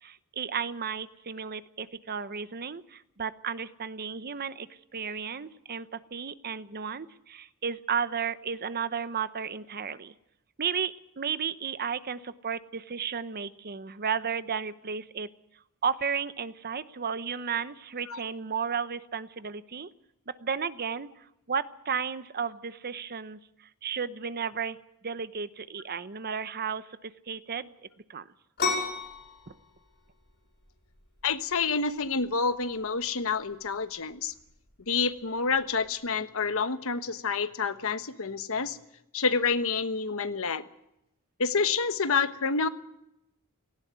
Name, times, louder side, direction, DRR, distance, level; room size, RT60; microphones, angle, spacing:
voice 1, 0.0-10.1 10.6-15.3 15.8-19.9 20.4-23.4 23.8-24.8 25.0-27.7 28.1-28.3 29.5-29.6, right 6 dB, 45° right, 14 dB, 0.8 m, -33 dB
sound 1, 28.6-36.0, left 4 dB, 50° left, 5.7 m, -37 dB
voice 2, 31.2-34.3 34.9-38.8 39.1-40.6 41.4-42.7, left 5 dB, 65° left, 11 dB, 1.1 m, -28 dB
18.0 x 16.5 x 9.4 m, 0.84 s
head